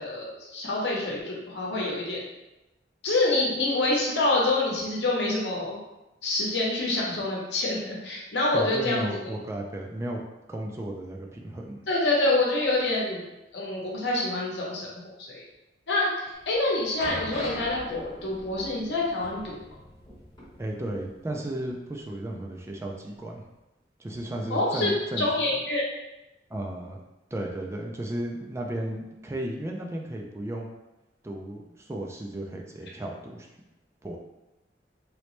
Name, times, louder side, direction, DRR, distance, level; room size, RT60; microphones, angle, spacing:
voice 1, 0.0-2.3 3.0-5.8 6.2-9.1 11.9-13.2 13.5-14.9 15.3-15.4 15.9-19.6 24.5-24.9 25.2-25.8, left 2 dB, 75° left, -3 dB, 0.8 m, -26 dB
voice 2, 8.5-10.2 10.5-11.8 20.6-23.4 24.0-25.3 26.5-27.0 27.3-30.7 31.2-33.5 34.0-34.2, right 1 dB, 15° right, 0 dB, 0.3 m, -34 dB
sound 1, 16.4-21.3 21.5-21.7 22.4-22.5, left 1 dB, 25° left, 1.2 m, -41 dB
3.1 x 3.0 x 3.1 m, 0.98 s
head